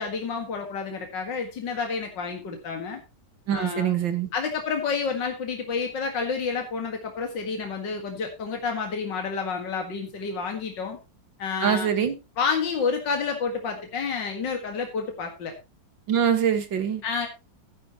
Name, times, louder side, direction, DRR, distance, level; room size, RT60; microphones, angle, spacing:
voice 1, 0.0-3.0 3.5-3.9 4.3-11.0 11.4-11.9 12.4-15.5 17.0-17.3, left 5 dB, 70° left, 2.6 m, -29 dB
voice 2, 3.5-4.3 11.6-12.1 16.1-17.0, right 8 dB, 85° right, 2.4 m, -24 dB
14.5 x 10.0 x 3.0 m
omnidirectional pair, 2.0 m